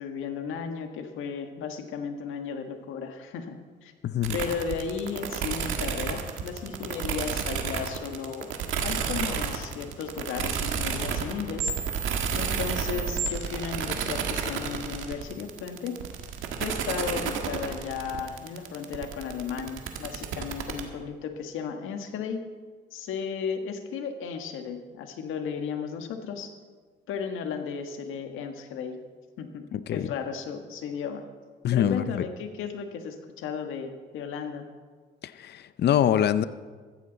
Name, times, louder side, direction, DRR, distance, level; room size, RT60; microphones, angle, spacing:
voice 1, 0.0-3.5 3.8-3.9 4.3-8.5 8.8-11.7 12.3-16.0 16.6-22.4 22.9-26.5 27.1-29.0 29.4-29.6 29.9-31.2 31.7-34.6, left 6 dB, 85° left, 6 dB, 1.5 m, -34 dB
voice 2, 4.0-4.4 29.7-30.1 31.6-32.3 35.2-36.4, left 10 dB, 60° left, 14 dB, 0.6 m, -25 dB
sound 1, 4.2-20.8, right 7 dB, 80° right, 1.5 m, -31 dB
15.0 x 14.5 x 4.0 m, 1.5 s
cardioid pair, 90°, 20 cm